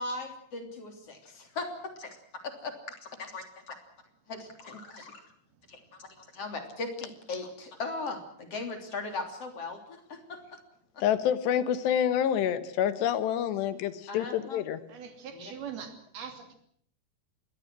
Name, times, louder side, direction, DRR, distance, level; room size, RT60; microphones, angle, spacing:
voice 1, 0.0-2.2 2.4-2.7 3.2-3.8 4.3-5.2 5.7-10.6 10.9-11.0 14.1-14.6 15.3-15.5, left 3 dB, 40° left, 5 dB, 3.8 m, -38 dB
voice 2, 11.0-14.8, left 9 dB, 90° left, 12 dB, 3.6 m, -27 dB
voice 3, 14.9-16.6, right 7 dB, 65° right, 6 dB, 4.7 m, -42 dB
26.5 x 21.0 x 6.2 m, 0.62 s
omnidirectional pair, 4.7 m